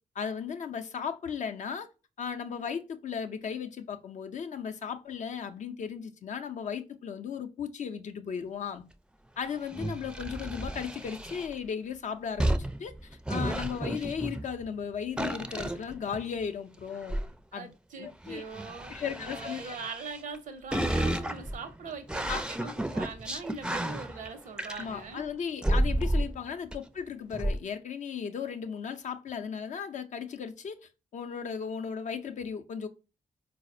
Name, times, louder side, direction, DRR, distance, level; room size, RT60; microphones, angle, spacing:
voice 1, 0.2-1.9 2.2-8.8 9.4-12.5 12.8-17.2 17.5-17.7 18.0-18.4 18.9-19.8 22.3-22.7 24.7-30.8 31.1-32.9, left 7 dB, 60° left, 0.5 m, -36 dB
sound 1, 9.6-11.5 12.4-14.7 15.2-16.4 16.9-17.3 18.2-20.4 20.7-25.1 25.6-26.4 26.7-26.8 27.3-27.6, right 1 dB, 5° right, 0.4 m, -32 dB
voice 2, 17.5-25.2, right 4 dB, 70° right, 0.6 m, -42 dB
4.0 x 2.0 x 2.5 m
supercardioid pair, 45°, 14 cm